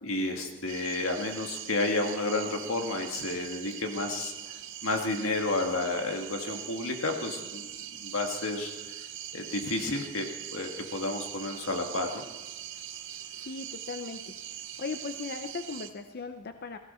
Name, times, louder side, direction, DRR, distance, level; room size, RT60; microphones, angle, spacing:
voice 1, 0.0-4.3 4.8-7.7 8.0-8.7 9.3-10.3 10.5-12.2, left 2 dB, 85° left, 3 dB, 1.9 m, -31 dB
sound 1, 0.7-15.9, right 11 dB, 65° right, 0.9 m, -42 dB
voice 2, 13.4-14.4 14.8-16.8, left 4 dB, 50° left, 8 dB, 0.6 m, -38 dB
17.5 x 15.0 x 4.4 m, 1.2 s
head